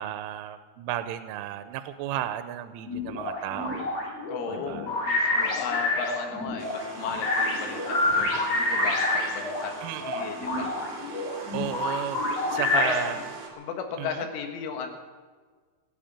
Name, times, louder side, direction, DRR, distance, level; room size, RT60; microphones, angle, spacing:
voice 1, 0.0-3.9 4.5-4.9 9.8-10.4 11.5-13.2 14.0-14.3, right 12 dB, 90° right, 11 dB, 3.2 m, -34 dB
sound 1, 2.9-9.7 10.0-13.2, left 2 dB, 35° left, 3.6 m, -28 dB
voice 2, 4.3-11.2 12.4-13.1 13.6-14.9, left 6 dB, 85° left, 5 dB, 4.0 m, -36 dB
sound 2, 6.6-13.5, right 4 dB, 60° right, 4.3 m, -41 dB
17.0 x 9.6 x 8.7 m, 1.5 s
omnidirectional pair, 5.5 m